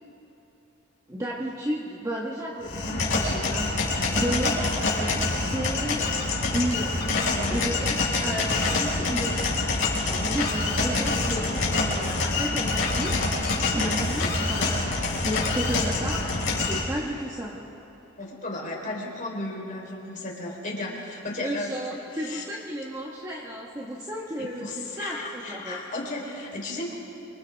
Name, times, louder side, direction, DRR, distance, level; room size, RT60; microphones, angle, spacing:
voice 1, 1.1-6.0 6.5-7.0 7.5-9.4 9.9-14.9 15.2-16.3 16.5-17.6 21.4-25.8, equal, 15° right, -3 dB, 1.5 m, -33 dB
sound 1, 2.6-16.8, left 3 dB, 65° left, 5.2 m, -26 dB
voice 2, 7.3-7.6 18.2-21.7 22.1-22.4 24.4-26.9, left 2 dB, 40° left, -1 dB, 4.0 m, -34 dB
28.5 x 26.5 x 3.6 m, 2.9 s
head